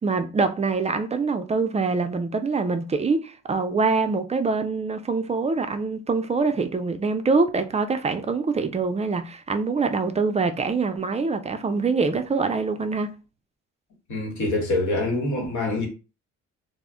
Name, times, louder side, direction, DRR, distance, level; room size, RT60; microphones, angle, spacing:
voice 1, 0.0-13.1, right 4 dB, 25° right, 0.3 m, -24 dB
voice 2, 14.1-15.9, left 2 dB, 70° left, 1.2 m, -25 dB
2.1 x 2.0 x 3.6 m
cardioid pair, 90°, 30 cm